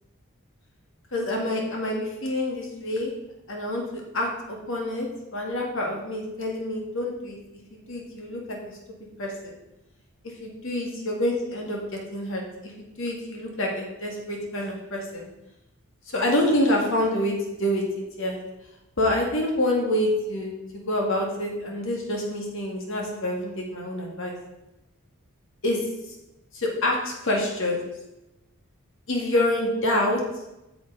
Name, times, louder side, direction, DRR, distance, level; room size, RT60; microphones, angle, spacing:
voice 1, 1.1-3.1 3.5-3.8 4.1-5.1 5.3-7.4 7.7-8.6 9.2-9.5 10.4-15.2 16.1-17.3 17.6-18.4 19.0-24.3 25.6-25.8 26.5-27.8 29.1-30.2, left 1 dB, 60° left, 0 dB, 2.0 m, -27 dB
9.6 x 7.0 x 3.9 m, 0.94 s
head